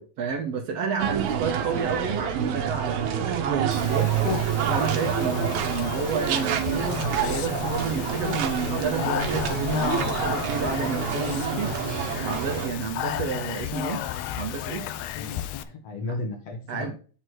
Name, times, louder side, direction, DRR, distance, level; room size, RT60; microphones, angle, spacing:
voice 1, 0.0-4.4 4.7-11.7 12.2-14.0 14.4-14.9 16.7-16.9, right 5 dB, 70° right, 3 dB, 1.7 m, -30 dB
sound 1, 1.0-12.7, right 8 dB, 85° right, 2.2 m, -27 dB
Speech, 3.7-15.6, left 10 dB, 80° left, 1.7 m, -32 dB
voice 2, 15.2-16.9, left 2 dB, 65° left, 3 dB, 2.3 m, -35 dB
7.9 x 3.1 x 5.8 m, 0.39 s
omnidirectional pair, 3.3 m